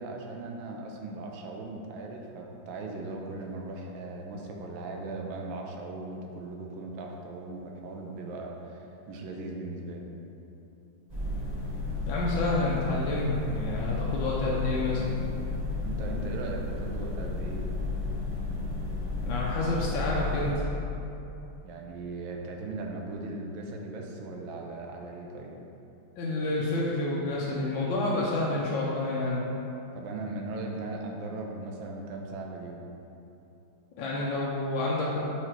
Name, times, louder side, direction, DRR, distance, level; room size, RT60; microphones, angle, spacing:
voice 1, 0.0-10.1 15.8-17.7 21.6-25.6 29.9-32.8, right 2 dB, 90° right, 1 dB, 1.5 m, -38 dB
sound 1, 11.1-20.5, left 3 dB, 30° right, 0.8 m, -33 dB
voice 2, 12.1-15.2 19.2-20.6 26.2-29.4 34.0-35.2, left 2 dB, 80° left, -5 dB, 1.4 m, -29 dB
4.8 x 4.4 x 4.5 m, 2.9 s
omnidirectional pair, 2.1 m